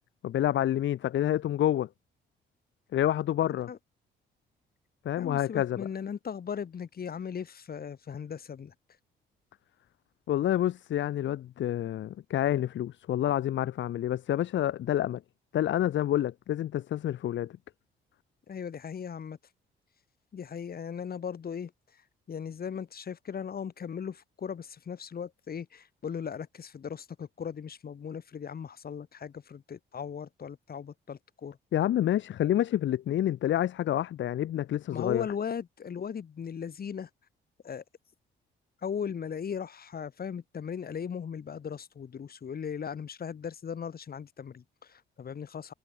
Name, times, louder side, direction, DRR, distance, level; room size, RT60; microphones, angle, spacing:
voice 1, 0.2-1.9 2.9-3.7 5.0-5.9 10.3-15.2 15.5-17.5 31.7-35.2, left 12 dB, 70° left, 1.6 m, -28 dB
voice 2, 5.2-8.7 18.5-19.4 20.3-21.7 22.3-31.6 34.9-37.1 37.6-37.8 38.8-45.7, left 7 dB, 50° left, 7.0 m, -38 dB
cardioid pair, 90°, 20 cm